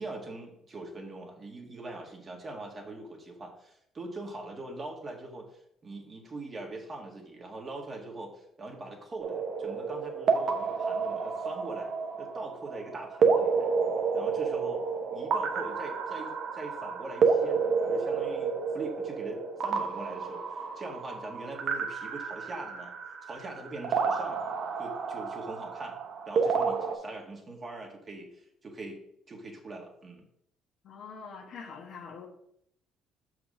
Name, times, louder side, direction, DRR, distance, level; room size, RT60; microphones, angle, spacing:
voice 1, 0.0-11.9 12.2-13.7 14.1-14.8 15.1-22.9 23.3-24.5 24.8-26.0 26.3-29.0 29.3-30.3, right 2 dB, 35° right, 1 dB, 1.9 m, -42 dB
sound 1, 9.2-27.0, right 5 dB, 55° right, 1.0 m, -30 dB
voice 2, 30.8-32.3, left 5 dB, 65° left, 1 dB, 1.3 m, -44 dB
6.1 x 4.8 x 4.8 m, 0.74 s
supercardioid pair, 65°, 0 cm